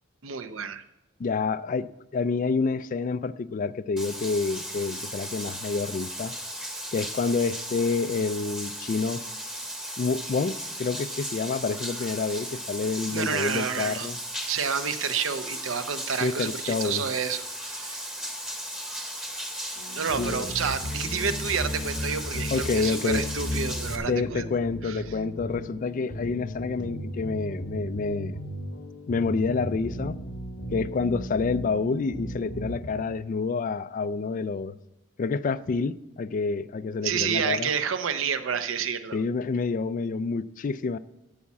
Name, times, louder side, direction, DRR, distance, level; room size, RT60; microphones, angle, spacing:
voice 1, 0.2-0.8 13.1-14.1 14.5-18.0 20.0-24.4 24.8-25.0 37.0-39.2, right 7 dB, 75° right, 0.7 m, -29 dB
voice 2, 1.2-6.3 6.9-9.2 10.0-14.2 16.2-17.0 20.2-20.5 22.5-23.2 24.1-28.4 29.1-30.2 30.7-34.7 35.2-37.7 39.1-41.0, left 4 dB, 40° left, 0.3 m, -28 dB
Bathtub (filling or washing), 4.0-24.0, equal, 5° right, 0.9 m, -36 dB
sound 1, 19.8-32.9, equal, 80° left, 1.7 m, -35 dB
8.4 x 8.4 x 7.3 m
head